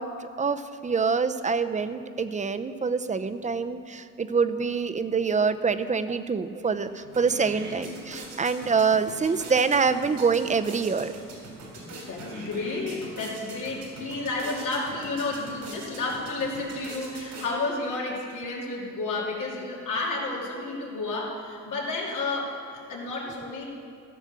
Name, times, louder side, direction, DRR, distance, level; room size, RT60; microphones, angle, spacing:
voice 1, 0.0-11.1, right 5 dB, 25° right, 10 dB, 0.6 m, -26 dB
sound 1, 6.6-6.7 7.0-17.9, right 1 dB, 85° right, 3.4 m, -42 dB
voice 2, 11.7-23.6, left 3 dB, 85° left, -3 dB, 2.8 m, -31 dB
15.0 x 6.2 x 6.8 m, 2.5 s
cardioid pair, 90°, 30 cm